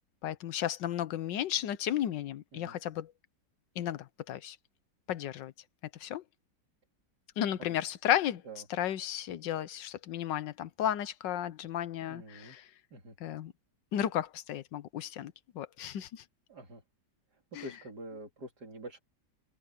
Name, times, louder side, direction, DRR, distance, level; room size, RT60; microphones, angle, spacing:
voice 1, 0.2-3.1 3.8-4.6 5.1-5.5 5.9-6.2 7.4-8.4 8.7-12.7 13.2-13.5 13.9-16.2 17.5-17.6, left 11 dB, 85° left, 1.5 m, -34 dB
voice 2, 12.0-12.6 12.9-13.2 16.5-16.8 17.5-19.0, right 1 dB, 65° right, 4.0 m, -46 dB
omnidirectional pair, 1.9 m